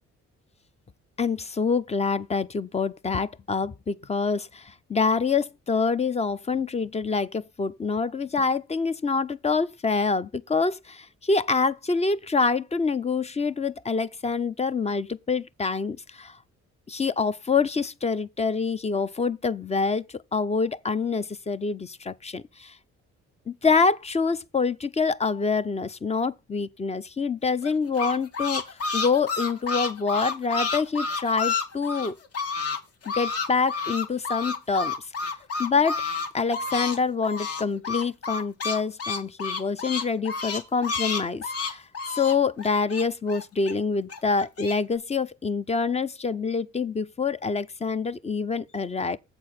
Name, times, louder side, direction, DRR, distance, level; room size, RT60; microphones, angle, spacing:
voice 1, 1.2-16.4 16.9-22.8 23.5-32.2 33.1-34.9 35.6-36.0 36.3-41.8 42.2-49.2, left 4 dB, 20° left, 0.5 m, -26 dB
sound 1, 27.6-32.8 33.0-37.0 37.2-43.7 44.1-44.7, left 4 dB, 50° left, 1.4 m, -30 dB
7.8 x 4.6 x 5.7 m
cardioid pair, 90°, 30 cm